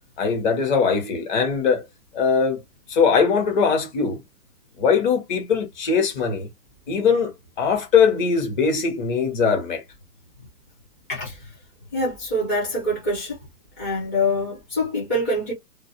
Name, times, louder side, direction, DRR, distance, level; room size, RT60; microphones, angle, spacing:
voice 1, 0.2-1.8 2.1-2.6 2.9-4.2 4.8-6.5 6.9-7.3 7.6-9.8, left 5 dB, 30° left, 0.9 m, -21 dB
voice 2, 11.9-13.4 13.8-15.5, left 1 dB, 15° left, 0.4 m, -25 dB
2.4 x 2.1 x 2.7 m
hypercardioid pair, 145°, 48 cm